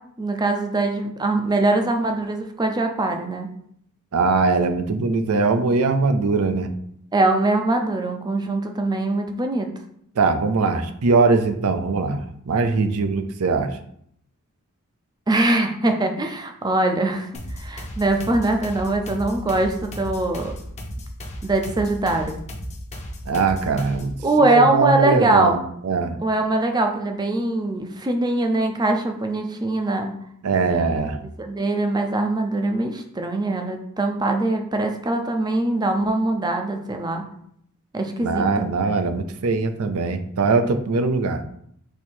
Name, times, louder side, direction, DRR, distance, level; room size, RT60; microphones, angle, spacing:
voice 1, 0.2-3.5 7.1-9.7 15.3-20.5 21.4-22.4 24.2-25.6 26.2-30.1 31.4-37.2 37.9-38.7, right 2 dB, 20° right, 5 dB, 0.5 m, -22 dB
voice 2, 4.1-6.7 10.2-13.8 23.3-24.1 24.4-26.2 30.4-31.2 38.2-41.4, right 4 dB, 75° right, 8 dB, 0.5 m, -21 dB
sound 1, 17.3-24.2, equal, 30° left, 0.8 m, -35 dB
4.5 x 2.7 x 4.3 m, 0.68 s
head